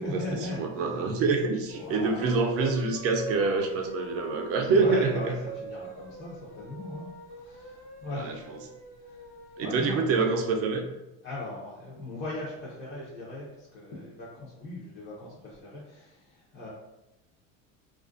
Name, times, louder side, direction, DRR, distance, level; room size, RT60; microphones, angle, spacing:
voice 1, 0.0-1.2 1.7-2.3 4.7-7.1 7.3-8.6 9.0-9.3 9.6-10.2 11.2-16.7, left 1 dB, 30° left, -7 dB, 0.6 m, -38 dB
voice 2, 0.6-5.1 8.2-8.3 9.6-10.8, right 4 dB, 40° right, 2 dB, 0.4 m, -26 dB
sound 1, 1.6-9.8, right 2 dB, 60° left, 0.8 m, -44 dB
2.4 x 2.1 x 2.4 m, 0.94 s
supercardioid pair, 115°, 38 cm